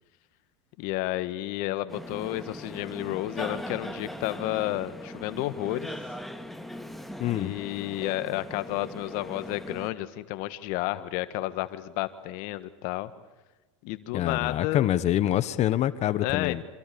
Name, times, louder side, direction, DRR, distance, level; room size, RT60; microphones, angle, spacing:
voice 1, 0.8-6.0 7.3-13.1 13.8-14.9 16.2-16.6, left 16 dB, 60° left, 12 dB, 1.8 m, -31 dB
sound 1, 1.9-9.9, equal, ahead, 2.4 m, -40 dB
voice 2, 7.2-7.5 14.1-16.6, left 12 dB, 45° left, 15 dB, 1.3 m, -26 dB
28.0 x 26.5 x 7.1 m, 1.1 s
hypercardioid pair, 85°, 16 cm